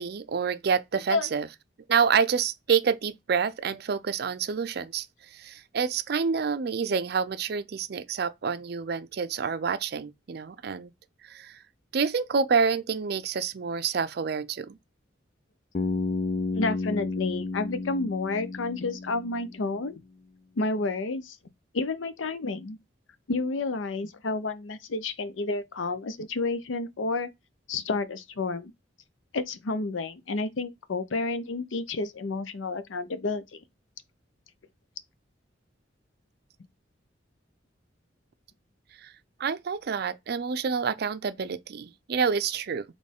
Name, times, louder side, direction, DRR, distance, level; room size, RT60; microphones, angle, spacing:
voice 1, 0.0-1.5 1.9-5.1 5.3-10.9 11.3-11.6 11.9-14.8 39.0-39.1 39.4-42.8, right 6 dB, 55° right, 0.4 m, -28 dB
Bass guitar, 15.7-19.7, left 3 dB, 35° left, 0.4 m, -32 dB
voice 2, 16.5-20.0 20.6-21.4 21.7-22.8 23.3-27.3 27.7-28.7 29.3-33.6, left 3 dB, 90° left, 0.6 m, -30 dB
4.2 x 3.1 x 3.6 m
head